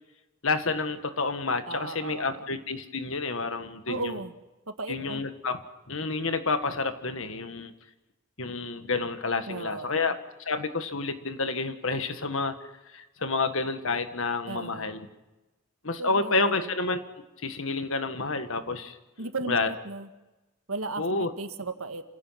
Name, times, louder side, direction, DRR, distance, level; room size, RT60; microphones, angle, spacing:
voice 1, 0.4-4.1 4.9-5.6 5.9-7.7 8.4-12.6 12.9-15.1 15.8-17.0 17.4-19.0 19.5-19.7 21.0-21.3, left 3 dB, 70° left, 9 dB, 1.7 m, -29 dB
voice 2, 1.7-2.5 3.9-4.4 4.7-5.2 9.5-10.1 14.5-15.0 16.0-16.7 19.2-20.1 20.7-22.0, right 2 dB, 80° right, 8 dB, 1.8 m, -36 dB
29.0 x 16.5 x 5.9 m, 1.1 s
head